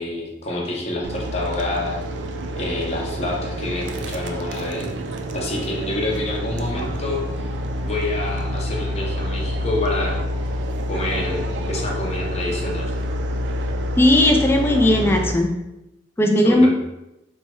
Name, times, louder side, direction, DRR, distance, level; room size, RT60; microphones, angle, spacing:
voice 1, 0.0-2.0 2.6-4.9 5.3-7.5 7.8-10.2 10.9-12.9 16.4-16.7, left 2 dB, 35° left, -2 dB, 0.7 m, -27 dB
sound 1, 1.0-15.3, equal, 85° right, 0.4 m, -27 dB
voice 2, 14.0-15.5 16.2-16.7, left 1 dB, 15° left, 4 dB, 0.3 m, -16 dB
3.2 x 2.2 x 4.1 m, 0.92 s
head